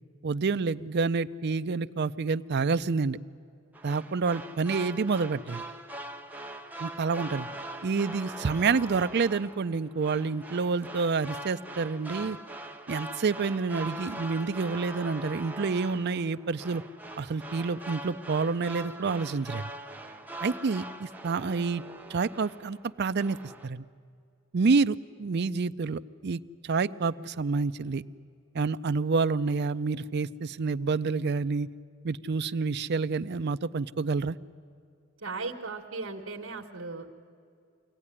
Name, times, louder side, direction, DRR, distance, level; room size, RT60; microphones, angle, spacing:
voice 1, 0.2-3.2 3.8-5.6 6.8-7.5 7.8-12.4 12.9-16.8 17.2-19.7 20.4-21.8 22.1-23.4 23.6-23.8 24.5-28.0 28.5-31.7 32.0-34.4, right 4 dB, 55° right, 12 dB, 0.5 m, -28 dB
sound 1, 3.7-22.9 23.2-23.7, right 1 dB, 10° right, 0.9 m, -42 dB
voice 2, 35.2-37.1, right 3 dB, 80° right, -1 dB, 1.4 m, -37 dB
24.0 x 17.0 x 9.9 m, 2.3 s
head